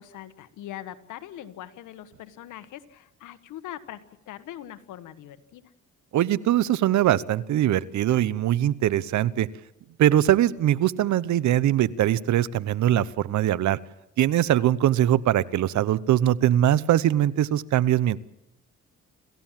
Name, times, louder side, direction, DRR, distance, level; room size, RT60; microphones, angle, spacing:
voice 1, 0.0-5.7, left 12 dB, 85° left, 11 dB, 1.5 m, -42 dB
voice 2, 6.1-9.5 10.0-13.8 14.2-18.2, right 12 dB, 70° right, 18 dB, 0.9 m, -22 dB
28.0 x 15.0 x 7.5 m, 0.88 s
cardioid pair, 90°, 30 cm